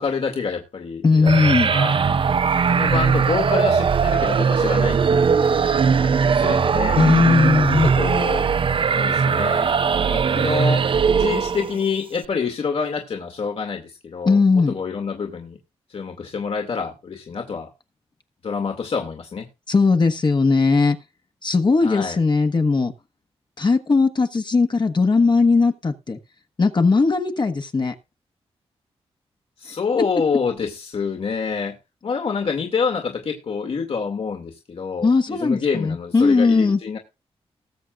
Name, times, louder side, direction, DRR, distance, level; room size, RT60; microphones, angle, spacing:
voice 1, 0.0-1.3 1.7-2.0 2.7-5.7 6.0-7.1 7.8-8.5 8.9-9.7 10.1-15.6 15.9-17.7 18.4-19.5 21.8-22.2 29.6-31.8 32.0-37.0, left 5 dB, 65° left, 2.2 m, -27 dB
voice 2, 1.0-1.7 7.0-7.9 14.2-14.8 19.7-21.0 21.4-22.9 23.6-26.2 26.6-27.9 35.0-36.8, left 4 dB, 45° left, 1.3 m, -18 dB
sound 1, 1.3-11.8, right 6 dB, 55° right, 0.6 m, -19 dB
20.0 x 7.6 x 2.5 m
cardioid pair, 75°, 11 cm